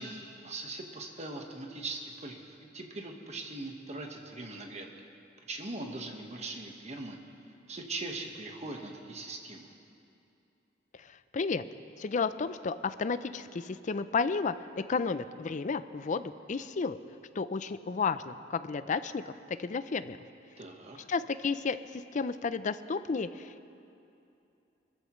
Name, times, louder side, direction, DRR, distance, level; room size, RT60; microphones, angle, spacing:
voice 1, 0.0-4.9 5.5-7.2 7.7-9.7 20.6-21.1, right 2 dB, 35° right, 2 dB, 1.4 m, -41 dB
voice 2, 11.0-11.6 12.0-17.0 17.4-19.3 19.6-20.2 21.1-23.7, left 4 dB, 40° left, 13 dB, 0.4 m, -32 dB
24.0 x 13.5 x 3.1 m, 2.7 s
head